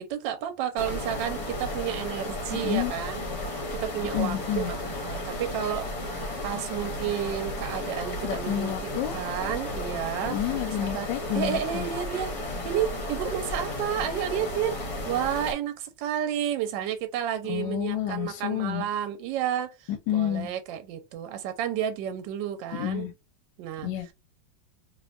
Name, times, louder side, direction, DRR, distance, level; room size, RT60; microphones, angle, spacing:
voice 1, 0.0-10.4 10.8-11.1 11.3-12.3 12.6-14.8 15.0-23.1 23.6-23.9, right 10 dB, 80° right, 1.2 m, -31 dB
sound 1, 0.8-15.5, left 1 dB, 60° left, 1.3 m, -34 dB
voice 2, 2.5-2.9 4.1-4.7 8.2-9.2 10.3-11.9 17.4-18.9 19.9-20.5 22.7-23.1 23.8-24.1, left 12 dB, 80° left, 1.3 m, -29 dB
3.1 x 2.1 x 2.4 m
omnidirectional pair, 2.0 m